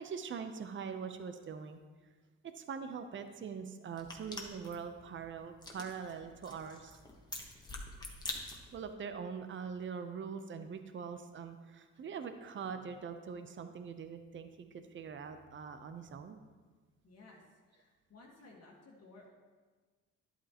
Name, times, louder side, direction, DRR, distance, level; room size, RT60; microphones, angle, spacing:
voice 1, 0.0-1.8 2.4-7.0 8.7-16.4, right 6 dB, 40° right, 8 dB, 0.7 m, -43 dB
sound 1, 3.9-8.9, left 2 dB, 15° left, 1.3 m, -46 dB
voice 2, 17.0-19.3, left 2 dB, 55° left, -2 dB, 1.6 m, -57 dB
11.5 x 8.2 x 3.0 m, 1.4 s
cardioid pair, 90°, 30 cm